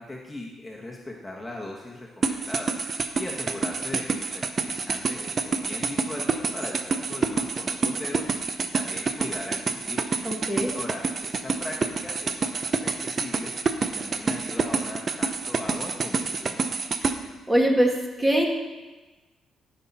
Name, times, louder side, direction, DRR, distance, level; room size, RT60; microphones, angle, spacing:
voice 1, 0.0-8.3 8.6-10.1 10.7-13.5 13.8-16.8, left 1 dB, 10° left, -3 dB, 1.4 m, -39 dB
sound 1, 2.2-17.1, right 4 dB, 40° right, 0.7 m, -27 dB
voice 2, 10.2-10.7 17.5-18.5, right 1 dB, 10° right, 0 dB, 1.7 m, -22 dB
14.0 x 5.6 x 4.3 m, 1.2 s
cardioid pair, 90°, 0 cm